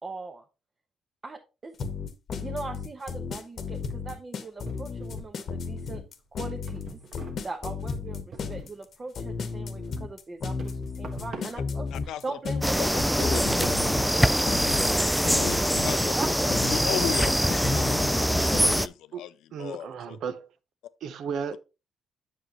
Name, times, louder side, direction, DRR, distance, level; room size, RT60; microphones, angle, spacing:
voice 1, 0.0-0.4 1.2-1.7 2.4-6.0 6.3-7.0 7.4-15.2 16.1-16.6, right 3 dB, 30° right, 1.0 m, -40 dB
sound 1, 1.8-18.8, left 5 dB, 55° left, 1.0 m, -33 dB
sound 2, 4.7-5.7 6.1-9.0 9.3-12.4 12.7-17.6, right 4 dB, 55° right, 1.4 m, -44 dB
voice 2, 11.9-12.4 12.8-13.7 15.2-16.2 16.4-19.3 19.6-20.2, left 11 dB, 85° left, 0.5 m, -36 dB
sound 3, 12.6-18.9, equal, ahead, 0.3 m, -24 dB
voice 3, 19.1-20.5 21.0-21.6, right 6 dB, 70° right, 0.8 m, -35 dB
7.8 x 6.4 x 3.0 m
cardioid pair, 90°, 0 cm